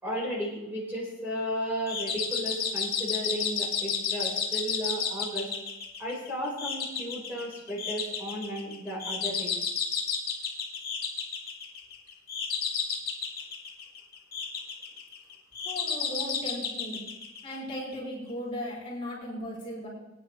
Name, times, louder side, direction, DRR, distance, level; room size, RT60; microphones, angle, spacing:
voice 1, 0.0-5.5 6.0-9.6, equal, 10° right, -6 dB, 4.8 m, -34 dB
sound 1, 1.9-18.0, left 6 dB, 50° left, 2.3 m, -32 dB
voice 2, 15.6-17.0 17.4-19.9, equal, 30° left, -6 dB, 5.2 m, -37 dB
21.5 x 9.9 x 3.3 m, 0.96 s
head